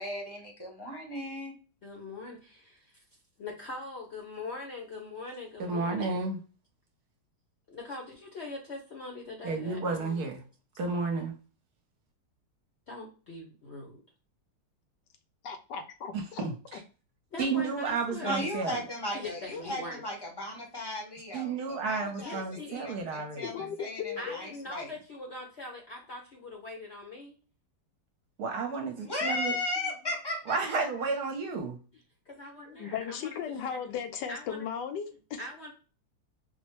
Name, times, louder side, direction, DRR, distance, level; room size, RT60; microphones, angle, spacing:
voice 1, 0.0-1.5 18.2-24.9 29.0-30.8, left 1 dB, 20° left, 0 dB, 0.7 m, -36 dB
voice 2, 1.8-3.0 3.4-6.2 7.7-10.2 12.9-14.0 17.3-18.5 19.1-20.1 22.2-22.8 24.2-27.3 32.3-33.4 33.7-33.8 34.3-34.6 35.4-35.7, left 2 dB, 50° left, 0 dB, 0.8 m, -42 dB
voice 3, 5.6-6.4 9.4-10.4 10.8-11.3 16.1-16.8 17.4-18.8 21.3-23.5 28.4-29.6 30.5-31.8, right 4 dB, 65° right, 4 dB, 1.1 m, -32 dB
voice 4, 15.5-16.5 16.7-16.8 23.4-24.4 32.8-35.4, left 7 dB, 80° left, 7 dB, 1.2 m, -36 dB
4.2 x 2.1 x 3.0 m, 0.35 s
omnidirectional pair, 1.9 m